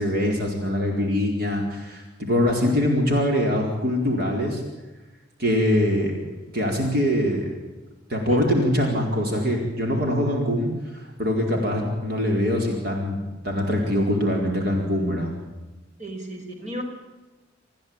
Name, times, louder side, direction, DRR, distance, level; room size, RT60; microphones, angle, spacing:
voice 1, 0.0-4.6 5.4-6.2 6.5-7.5 8.1-15.3, left 1 dB, 55° right, 1 dB, 4.5 m, -23 dB
voice 2, 16.0-16.8, right 1 dB, 40° right, 2 dB, 5.1 m, -35 dB
27.0 x 15.5 x 8.9 m, 1.2 s
head